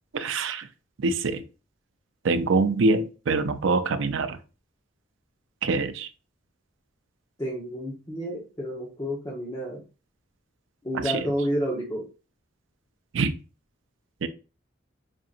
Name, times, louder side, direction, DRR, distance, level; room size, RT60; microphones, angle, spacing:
voice 1, 0.1-0.7 1.0-1.4 2.2-4.4 5.6-6.1 11.1-11.2 13.1-13.3 14.2-14.3, right 3 dB, 70° right, 10 dB, 0.5 m, -24 dB
voice 2, 7.4-9.8 10.8-12.1, equal, 20° left, -4 dB, 0.9 m, -30 dB
5.1 x 2.8 x 2.5 m, 0.33 s
head